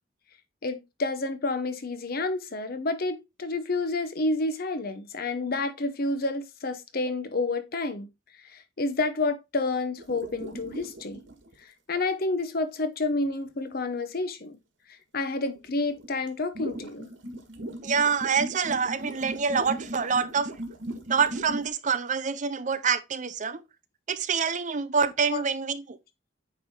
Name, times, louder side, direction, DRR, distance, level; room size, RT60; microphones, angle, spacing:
voice 1, 0.6-8.1 8.5-11.2 11.9-14.5 15.1-17.1 25.3-25.4, left 3 dB, 50° left, 0.8 m, -29 dB
sound 1, 10.0-11.5 13.1-13.3 15.6-15.7 15.9-21.7, right 1 dB, 90° right, 1.6 m, -37 dB
voice 2, 17.8-20.5 21.1-23.6 24.1-26.0, right 6 dB, 40° right, 0.6 m, -26 dB
9.0 x 3.3 x 3.6 m
head